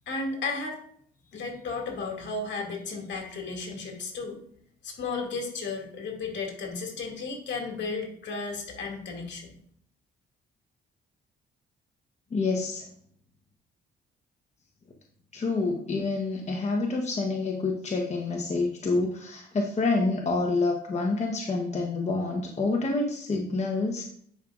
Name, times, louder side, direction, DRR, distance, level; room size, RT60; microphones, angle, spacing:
voice 1, 0.1-0.8 1.3-4.4 4.8-9.5, left 4 dB, 65° left, 0 dB, 2.3 m, -34 dB
voice 2, 12.3-12.8 15.3-24.0, left 3 dB, 35° left, 0 dB, 1.1 m, -27 dB
10.0 x 5.2 x 2.5 m, 0.62 s
cardioid pair, 90°, 20 cm